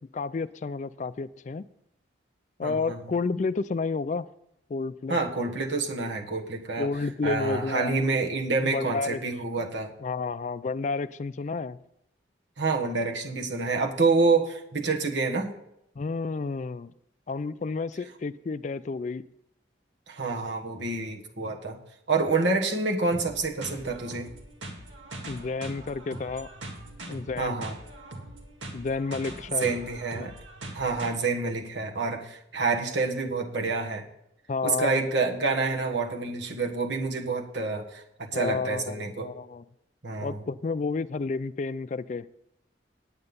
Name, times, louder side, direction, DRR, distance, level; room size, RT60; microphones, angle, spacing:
voice 1, 0.1-1.6 2.6-4.3 4.7-5.2 6.8-8.0 8.6-9.2 10.0-11.8 16.0-16.9 17.3-19.2 25.3-26.5 27.1-27.6 28.7-29.7 30.1-30.3 34.5-35.0 38.3-39.6 40.2-42.3, left 4 dB, 40° left, 0.3 m, -31 dB
voice 2, 2.6-3.1 5.1-6.9 7.2-9.9 12.6-15.5 20.1-21.8 22.1-24.3 27.4-27.7 29.6-30.3 30.7-34.0 34.6-39.3 40.0-40.4, right 3 dB, 70° right, 1.5 m, -28 dB
sound 1, 23.1-31.1, right 1 dB, 85° right, 1.9 m, -42 dB
9.7 x 8.8 x 5.4 m
head